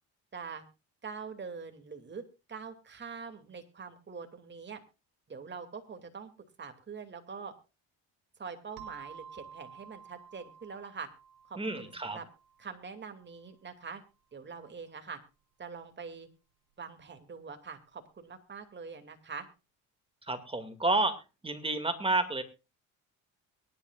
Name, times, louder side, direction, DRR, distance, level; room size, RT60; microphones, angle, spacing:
voice 1, 0.3-0.6 1.0-2.2 2.5-4.8 5.3-6.3 6.6-7.5 8.4-11.1 11.5-12.3 12.6-14.0 14.3-15.2 15.6-16.3 16.8-19.5, right 5 dB, 30° right, 6 dB, 2.6 m, -44 dB
sound 1, 8.8-13.2, right 7 dB, 85° right, 2.7 m, -51 dB
voice 2, 11.6-12.2 20.3-21.1 21.4-22.4, right 2 dB, 15° right, 7 dB, 2.3 m, -30 dB
23.0 x 11.0 x 2.5 m, 0.30 s
cardioid pair, 95°, 35 cm